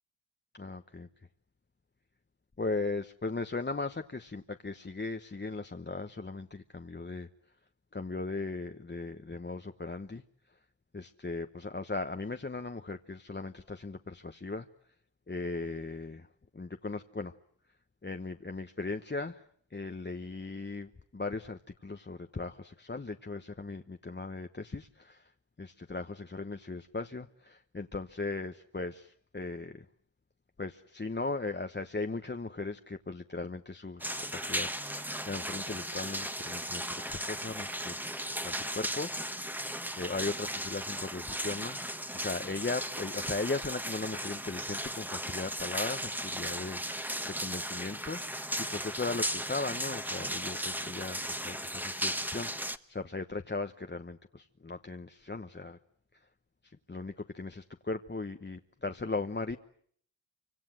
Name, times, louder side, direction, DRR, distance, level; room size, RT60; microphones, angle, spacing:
voice 1, 0.5-1.1 2.6-7.3 7.9-10.2 10.9-14.7 15.3-16.3 16.5-17.3 18.0-19.4 19.7-25.3 25.6-29.9 30.6-38.0 38.4-39.4 40.0-41.8 42.1-48.4 48.7-55.8 56.6-59.6, left 3 dB, 25° left, 7 dB, 1.1 m, -38 dB
sound 1, 34.0-52.8, equal, 5° right, 1.5 m, -36 dB
27.5 x 25.5 x 7.7 m, 0.64 s
cardioid pair, 60°, 46 cm